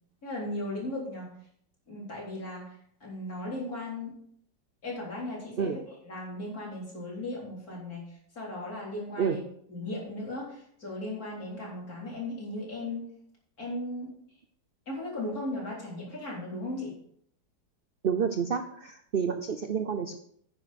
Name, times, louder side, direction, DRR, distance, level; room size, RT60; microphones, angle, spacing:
voice 1, 0.2-1.3 1.9-4.1 4.8-9.4 9.7-13.1 13.6-14.1 14.9-16.9, left 1 dB, 50° left, -3 dB, 4.3 m, -37 dB
voice 2, 18.0-20.2, right 7 dB, 70° right, 8 dB, 0.5 m, -29 dB
10.0 x 9.1 x 4.2 m, 0.65 s
omnidirectional pair, 2.0 m